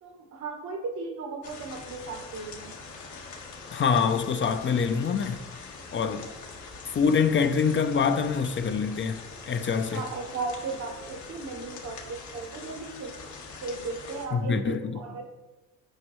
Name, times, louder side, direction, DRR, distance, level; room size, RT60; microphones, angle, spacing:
voice 1, 0.0-2.7 9.9-13.2 13.6-15.2, right 4 dB, 70° right, 1.4 m, -36 dB
sound 1, 1.4-14.3, left 4 dB, 75° left, 1.4 m, -43 dB
voice 2, 3.7-5.5 5.9-6.3 6.9-10.0 14.3-15.0, left 6 dB, 40° left, 0.6 m, -25 dB
9.3 x 5.2 x 3.1 m
cardioid pair, 90°, 30 cm